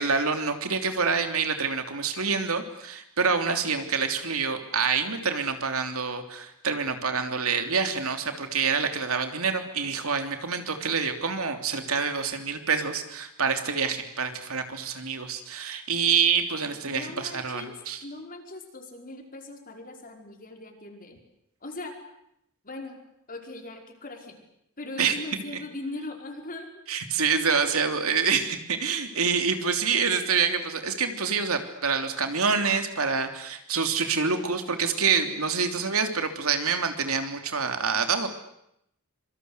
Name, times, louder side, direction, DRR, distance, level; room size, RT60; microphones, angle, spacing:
voice 1, 0.0-18.0 25.0-25.2 26.9-38.3, right 5 dB, 70° right, 7 dB, 3.2 m, -26 dB
voice 2, 16.9-17.8 18.0-21.2 21.6-21.9 22.6-23.0 23.3-24.4 24.8-26.8, left 2 dB, 40° left, 3 dB, 5.2 m, -40 dB
26.0 x 24.5 x 8.2 m, 0.77 s
head